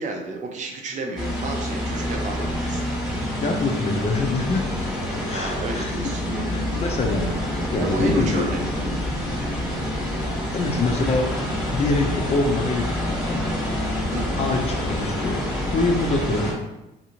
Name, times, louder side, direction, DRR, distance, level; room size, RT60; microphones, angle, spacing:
voice 1, 0.0-2.8 5.1-6.6 7.8-8.6 14.1-14.4, right 3 dB, 45° right, 1 dB, 0.6 m, -31 dB
sound 1, 1.2-16.5, left 1 dB, 5° right, 1.0 m, -27 dB
voice 2, 3.2-4.6 5.3-6.0 6.5-7.3 7.7-8.5 10.5-13.5 14.4-15.4 15.7-16.6, left 3 dB, 40° left, 3 dB, 0.5 m, -25 dB
2.7 x 2.5 x 2.8 m, 0.93 s
cardioid pair, 110°, 17 cm